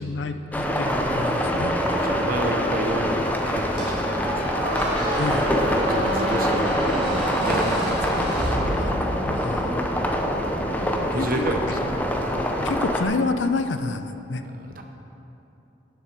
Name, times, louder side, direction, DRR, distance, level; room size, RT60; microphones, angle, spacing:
voice 1, 0.0-1.8 4.4-4.5 5.1-5.5 8.1-9.8 11.2-11.5 12.6-14.4, left 3 dB, 80° left, 10 dB, 0.5 m, -29 dB
sound 1, 0.5-13.0, equal, 10° left, 0.7 m, -25 dB
voice 2, 1.4-4.6 5.5-8.7 10.0-11.9 14.6-14.8, right 1 dB, 50° right, 3 dB, 1.0 m, -32 dB
sound 2, 3.7-9.8, equal, 70° right, 2.2 m, -40 dB
Squeak, 3.8-9.3, right 1 dB, 30° right, 2.6 m, -29 dB
10.0 x 7.4 x 6.1 m, 2.9 s
head